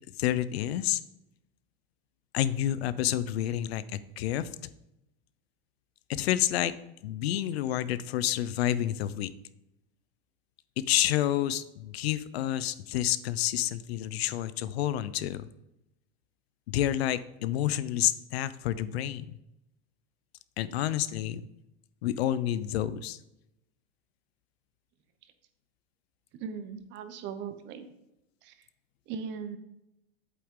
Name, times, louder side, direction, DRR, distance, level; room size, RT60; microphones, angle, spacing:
voice 1, 0.2-1.0 2.3-4.5 6.1-6.7 7.0-9.3 10.8-15.5 16.7-19.4 20.6-21.4 22.0-23.2, left 12 dB, 80° left, 16 dB, 0.6 m, -29 dB
voice 2, 26.4-27.9 28.4-28.6 29.1-29.6, right 6 dB, 35° right, 10 dB, 0.9 m, -38 dB
8.4 x 7.8 x 3.7 m, 0.87 s
supercardioid pair, 145°, 31 cm